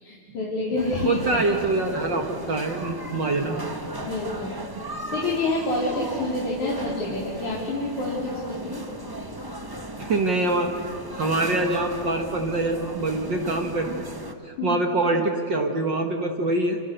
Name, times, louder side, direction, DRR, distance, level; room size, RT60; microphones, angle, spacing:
voice 1, 0.0-1.4 4.0-4.6 5.1-8.8 14.6-14.8, left 2 dB, 80° left, -5 dB, 5.2 m, -28 dB
sound 1, 0.8-14.3, right 1 dB, 20° right, 0.6 m, -36 dB
voice 2, 1.0-3.6 4.8-4.9 10.0-10.7 11.1-14.0 14.5-16.8, right 2 dB, 45° right, 3 dB, 2.0 m, -25 dB
29.0 x 29.0 x 6.9 m, 2.5 s
omnidirectional pair, 3.3 m